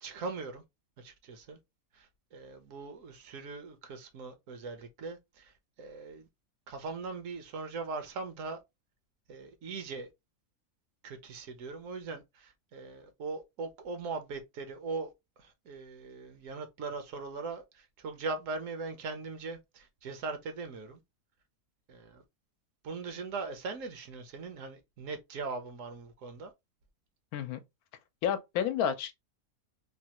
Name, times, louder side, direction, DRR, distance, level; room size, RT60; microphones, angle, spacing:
voice 1, 0.0-0.6 1.0-1.6 1.9-6.3 6.7-8.6 9.3-10.1 11.0-15.1 15.4-21.0 21.9-22.2 22.8-26.5, right 4 dB, 70° right, 1.0 m, -40 dB
voice 2, 28.2-29.1, left 8 dB, 90° left, 1.1 m, -30 dB
3.3 x 2.3 x 2.8 m
omnidirectional pair, 1.5 m